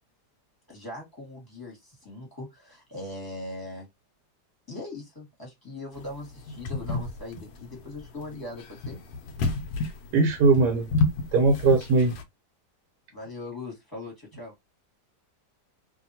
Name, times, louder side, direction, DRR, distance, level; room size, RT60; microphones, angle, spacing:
voice 1, 0.7-3.9 4.7-9.0 13.1-14.5, left 2 dB, 15° left, 1.4 m, -40 dB
sound 1, 6.0-12.2, left 3 dB, 70° left, 1.1 m, -31 dB
voice 2, 10.1-10.9 11.3-12.1, right 3 dB, 75° right, 1.4 m, -20 dB
2.8 x 2.7 x 2.7 m
omnidirectional pair, 1.8 m